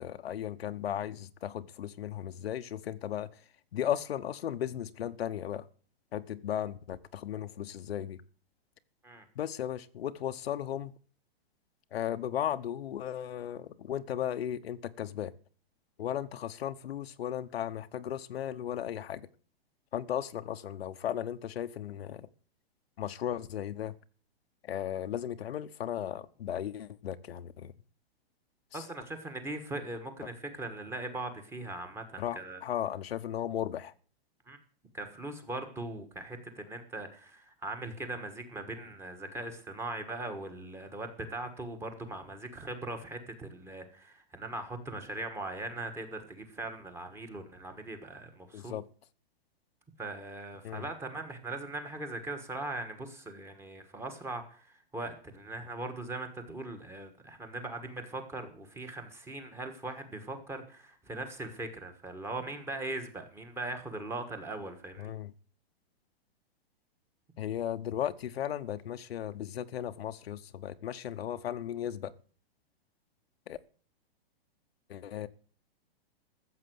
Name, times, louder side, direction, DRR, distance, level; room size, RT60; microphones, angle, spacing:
voice 1, 0.0-3.4 3.7-5.7 6.1-8.2 9.3-10.9 11.9-15.3 16.0-19.3 19.9-22.3 23.0-23.9 24.6-27.7 28.7-28.9 32.2-33.9 48.5-48.8 50.6-50.9 65.0-65.3 67.4-72.1 73.5-73.6 74.9-75.3, left 10 dB, 80° left, 1.0 m, -36 dB
voice 2, 28.7-32.6 34.5-34.6 34.9-48.7 50.0-65.1, right 2 dB, 10° right, 1.4 m, -40 dB
14.0 x 7.6 x 7.7 m
hypercardioid pair, 165°, 31 cm